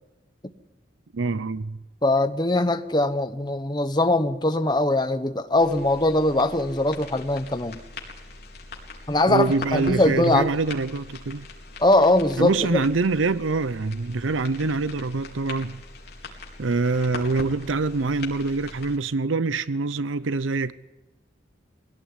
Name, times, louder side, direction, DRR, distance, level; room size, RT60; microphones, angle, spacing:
voice 1, 1.1-1.8 9.3-11.5 12.4-15.8 16.6-20.7, right 3 dB, 90° right, 0.7 m, -25 dB
voice 2, 2.0-7.8 9.1-10.5 11.8-12.8, left 2 dB, 20° left, 1.1 m, -21 dB
sound 1, 5.6-19.0, left 3 dB, 55° left, 4.3 m, -41 dB
22.5 x 17.5 x 9.9 m
head